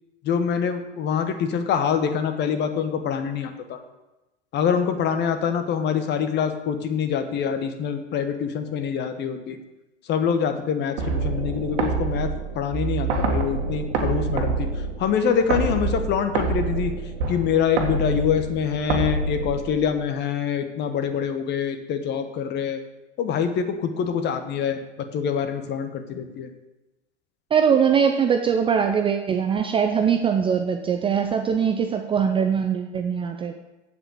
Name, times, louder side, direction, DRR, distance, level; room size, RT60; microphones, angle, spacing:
voice 1, 0.2-3.8 4.5-9.6 10.1-14.7 15.0-16.9 17.3-22.8 23.2-24.8 25.1-26.5, left 7 dB, 30° left, 8 dB, 1.1 m, -25 dB
sound 1, 11.0-20.0, right 3 dB, 55° right, 1.8 m, -27 dB
voice 2, 27.5-33.6, right 7 dB, 15° right, 5 dB, 0.5 m, -22 dB
8.3 x 7.8 x 6.2 m, 1.0 s
figure-of-eight pair, 95°, 35 cm